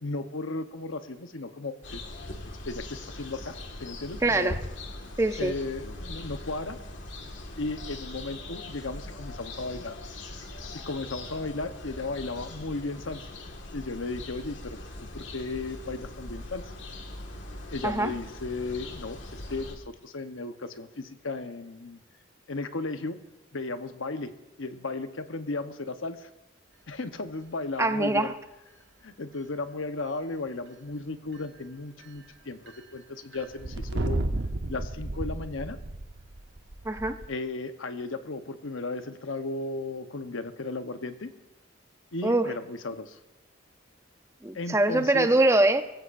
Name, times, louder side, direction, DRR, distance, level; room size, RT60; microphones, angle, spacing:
voice 1, 0.0-2.0 2.6-3.5 3.8-4.5 5.4-6.8 7.6-10.0 10.9-13.3 13.7-14.8 15.1-16.7 17.7-22.0 22.5-23.2 23.5-24.3 24.6-26.3 26.9-28.3 29.0-34.2 34.7-35.8 37.3-41.3 42.1-43.2 44.5-45.3, left 3 dB, 90° left, 8 dB, 1.0 m, -35 dB
sound 1, 1.8-19.8, left 2 dB, 70° left, 1.8 m, -41 dB
voice 2, 4.2-4.6 5.2-5.5 17.8-18.1 27.8-28.3 36.8-37.2 42.2-42.5 44.4-45.8, right 2 dB, 15° right, 9 dB, 0.5 m, -23 dB
sound 2, 31.3-31.4 32.0-32.3 32.7-32.8 33.3-37.3, right 2 dB, 60° right, 0.9 m, -33 dB
23.0 x 15.5 x 2.6 m, 0.97 s
head